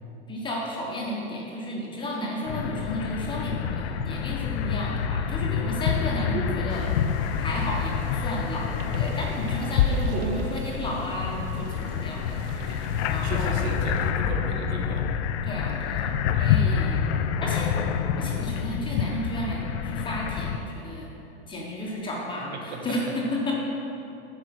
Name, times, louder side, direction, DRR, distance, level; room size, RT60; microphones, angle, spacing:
voice 1, 0.3-6.9 7.4-8.7 8.9-13.7 15.4-16.1 16.4-17.0 17.4-21.1 21.5-23.5, left 1 dB, 15° left, -3 dB, 1.2 m, -33 dB
sound 1, 2.5-20.6, left 7 dB, 75° left, 0.6 m, -27 dB
sound 2, 6.7-14.1, right 6 dB, 55° right, 0.7 m, -45 dB
voice 2, 13.2-15.1 16.3-16.7 22.5-22.8, right 4 dB, 75° right, 1 dB, 1.5 m, -35 dB
8.9 x 5.0 x 6.0 m, 2.9 s
supercardioid pair, 150°, 33 cm